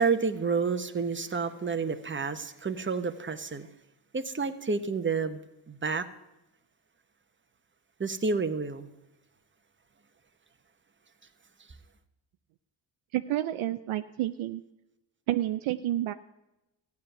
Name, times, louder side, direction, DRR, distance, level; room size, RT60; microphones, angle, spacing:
voice 1, 0.0-3.7 4.1-5.4 5.7-6.1 8.0-8.9, right 4 dB, 25° right, 9 dB, 1.1 m, -29 dB
voice 2, 13.1-14.6 15.3-16.1, right 13 dB, 75° right, 9 dB, 0.6 m, -29 dB
14.5 x 9.6 x 6.9 m, 0.96 s
cardioid pair, 70°, 49 cm